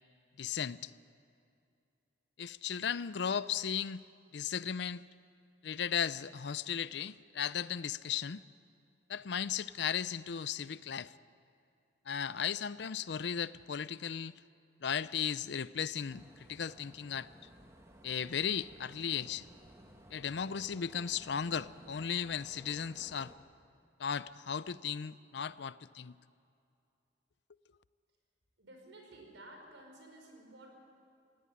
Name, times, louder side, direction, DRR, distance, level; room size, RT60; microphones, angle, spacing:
voice 1, 0.4-0.9 2.4-4.0 4.3-5.0 5.6-8.4 9.1-11.1 12.1-14.3 14.8-17.3 18.0-19.5 20.1-23.3 24.0-26.2, left 7 dB, 65° left, 0.5 m, -36 dB
sound 1, 16.1-23.4, equal, 15° right, 1.7 m, -57 dB
voice 2, 28.6-30.7, right 1 dB, 85° right, 5.0 m, -53 dB
18.0 x 17.0 x 9.9 m
head